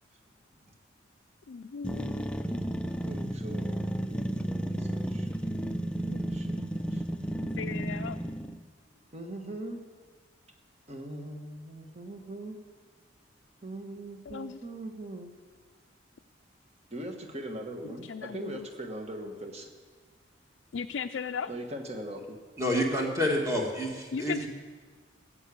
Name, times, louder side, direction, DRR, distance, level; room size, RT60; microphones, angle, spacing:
voice 1, 1.5-2.3 6.1-6.2 7.4-8.2 14.3-14.6 17.8-18.7 20.7-21.5 24.1-24.5, left 6 dB, 70° left, 7 dB, 0.4 m, -37 dB
sound 1, 1.8-8.6, right 1 dB, 5° left, 0.5 m, -33 dB
voice 2, 2.8-5.3 6.3-7.4 9.1-9.8 10.9-12.6 13.6-15.3 16.9-19.7 21.5-22.4, right 1 dB, 35° right, 4 dB, 1.4 m, -41 dB
voice 3, 22.6-24.5, equal, 15° right, -1 dB, 1.9 m, -28 dB
14.5 x 7.4 x 8.5 m, 1.5 s
head